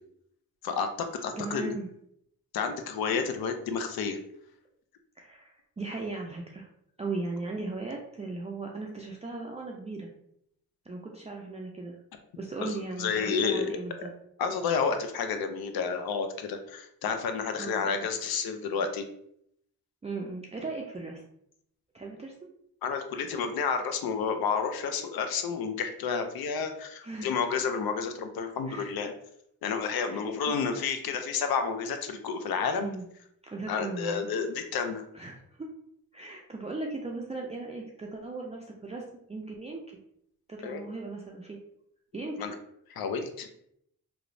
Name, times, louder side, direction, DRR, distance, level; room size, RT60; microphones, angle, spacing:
voice 1, 0.6-1.8 2.5-4.2 12.6-13.7 14.4-19.0 22.8-29.1 29.6-32.9 33.7-35.1 40.6-40.8 42.4-42.5 42.9-43.5, left 5 dB, 75° left, 6 dB, 0.5 m, -30 dB
voice 2, 1.4-1.9 5.2-6.7 7.0-10.1 10.9-12.0 12.4-14.1 17.6-18.1 20.0-21.2 21.9-22.5 27.0-27.4 28.7-28.9 30.1-30.6 32.8-33.1 33.4-34.2 35.1-35.7 36.1-39.8 40.5-41.6 42.1-42.4, right 3 dB, 20° right, -1 dB, 0.4 m, -37 dB
3.0 x 2.0 x 2.5 m, 0.72 s
cardioid pair, 50°, 37 cm